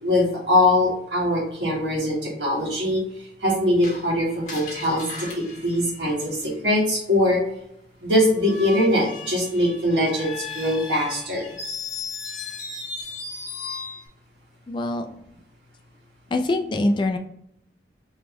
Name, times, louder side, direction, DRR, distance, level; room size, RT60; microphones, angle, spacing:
voice 1, 0.0-3.0 3.4-5.0 5.4-7.4 8.0-11.4, left 1 dB, 80° right, -3 dB, 1.4 m, -22 dB
Screech, 3.8-6.7 8.4-14.1, left 4 dB, 45° left, 1.2 m, -36 dB
voice 2, 14.7-15.1 16.3-17.2, left 2 dB, 25° left, 5 dB, 0.3 m, -23 dB
3.6 x 3.0 x 3.0 m, 0.74 s
head